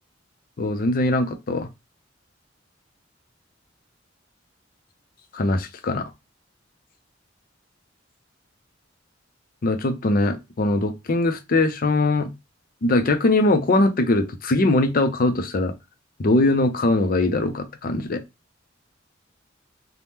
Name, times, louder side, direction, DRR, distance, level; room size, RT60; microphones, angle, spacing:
voice 1, 0.6-1.7 5.3-6.0 9.6-12.3 12.8-15.7 16.2-18.2, left 2 dB, 50° left, 0.5 m, -21 dB
2.8 x 2.1 x 3.4 m
head